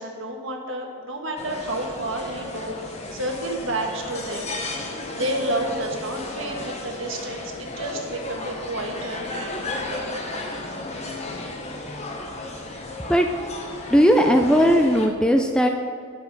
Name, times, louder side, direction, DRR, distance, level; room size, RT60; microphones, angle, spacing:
voice 1, 0.0-4.4 5.1-10.2 11.3-11.4, right 1 dB, 60° right, 2 dB, 1.3 m, -30 dB
sound 1, 1.4-15.1, left 2 dB, 30° left, 1.1 m, -34 dB
voice 2, 13.9-15.7, equal, 5° left, 4 dB, 0.4 m, -17 dB
10.5 x 7.2 x 5.4 m, 2.3 s
head